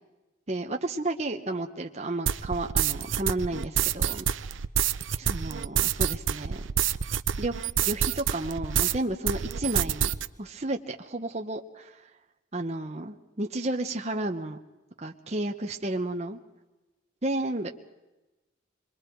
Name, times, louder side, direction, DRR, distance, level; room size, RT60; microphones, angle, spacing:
voice 1, 0.5-4.2 5.2-6.6 7.4-7.5 7.8-10.1 10.4-11.9 12.5-14.6 15.0-16.4 17.2-17.7, right 2 dB, 35° right, 3 dB, 1.0 m, -32 dB
sound 1, 2.3-9.0 9.3-10.3, right 9 dB, 90° right, 0.6 m, -27 dB
26.5 x 21.5 x 4.6 m, 1.1 s
head